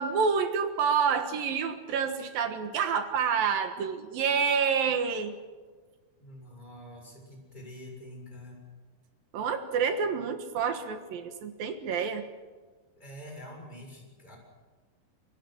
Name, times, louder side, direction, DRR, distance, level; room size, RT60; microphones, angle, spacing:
voice 1, 0.0-5.4 9.3-12.3, right 6 dB, 65° right, 8 dB, 3.0 m, -28 dB
voice 2, 6.2-8.6 13.0-14.4, equal, 10° left, 0 dB, 6.9 m, -46 dB
27.5 x 22.5 x 6.2 m, 1.4 s
omnidirectional pair, 4.7 m